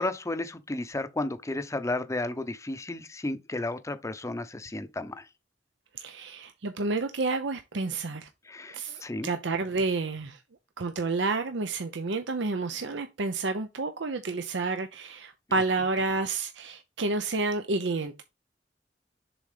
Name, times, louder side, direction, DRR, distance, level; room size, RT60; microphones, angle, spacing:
voice 1, 0.0-5.3 8.5-9.3, left 2 dB, 15° left, 0.6 m, -33 dB
voice 2, 5.9-8.3 8.7-10.4 10.8-18.2, right 3 dB, 85° right, 0.7 m, -30 dB
7.1 x 4.1 x 5.0 m
head